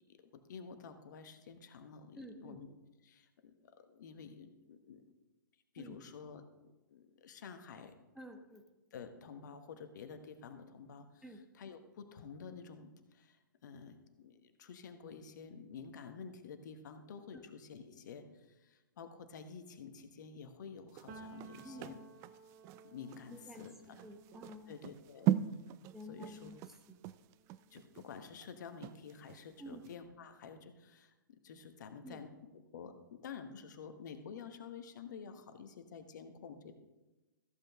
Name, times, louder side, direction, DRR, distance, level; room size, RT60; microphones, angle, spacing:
voice 1, 0.1-2.7 3.0-5.0 5.7-6.4 6.9-7.9 8.9-22.0 22.8-24.0 24.7-25.3 26.0-26.6 27.7-32.4 32.7-36.8, left 6 dB, 60° left, 8 dB, 1.2 m, -50 dB
voice 2, 2.2-2.6 5.8-6.0 8.2-8.6 11.2-11.4 21.6-22.1 23.3-23.7 24.0-24.7 25.9-26.6 26.9-27.0 29.6-29.8 32.0-32.2, equal, 5° right, 4 dB, 0.9 m, -50 dB
sound 1, 20.9-29.4 29.8-30.0, right 13 dB, 25° right, 0.3 m, -39 dB
Piano, 21.1-28.7 29.0-30.6, right 4 dB, 45° right, 1.4 m, -58 dB
14.0 x 7.8 x 3.6 m, 1.1 s
figure-of-eight pair, 120°, 11 cm